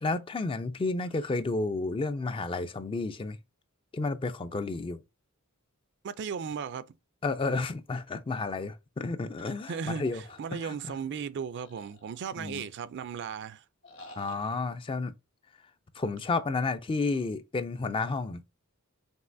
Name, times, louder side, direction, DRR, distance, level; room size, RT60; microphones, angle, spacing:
voice 1, 0.0-3.4 3.9-5.0 7.2-10.2 10.6-10.9 12.4-12.7 14.2-15.1 16.0-18.4, left 3 dB, 25° left, 0.3 m, -31 dB
voice 2, 6.0-6.9 9.7-13.6, right 6 dB, 55° right, 0.4 m, -36 dB
sound 1, 9.6-10.9 11.6-12.8 13.8-14.6, left 2 dB, 65° left, 1.8 m, -52 dB
5.4 x 3.2 x 2.6 m
head